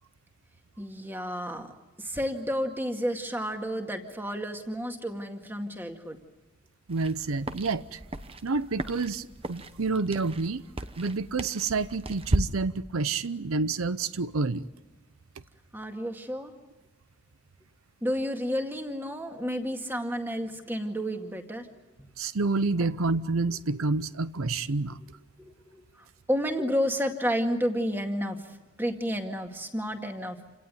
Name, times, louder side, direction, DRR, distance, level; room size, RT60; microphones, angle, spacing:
voice 1, 0.8-1.7 2.0-6.2 15.7-16.5 18.0-21.7 22.8-22.9 23.5-23.6 25.4-30.6, equal, 10° right, 2.1 m, -31 dB
sound 1, 6.9-12.4, right 1 dB, 25° right, 1.0 m, -35 dB
voice 2, 6.9-8.0 8.4-10.6 11.0-14.7 22.2-25.0, right 3 dB, 85° right, 0.8 m, -28 dB
28.5 x 18.0 x 9.5 m
head